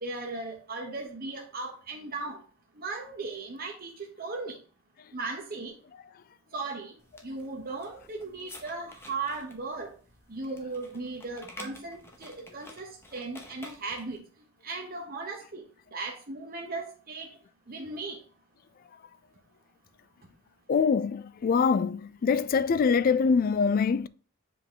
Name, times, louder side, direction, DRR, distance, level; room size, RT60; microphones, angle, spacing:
voice 1, 0.0-2.4 2.8-4.6 5.1-5.7 6.5-6.9 7.2-9.9 10.3-14.2 14.6-15.6 15.9-17.3 17.7-18.2, right 3 dB, 50° right, 1.0 m, -37 dB
sound 1, 7.0-14.2, left 1 dB, 15° left, 1.0 m, -50 dB
voice 2, 20.7-24.1, left 5 dB, 45° left, 0.3 m, -24 dB
7.5 x 3.8 x 3.9 m
head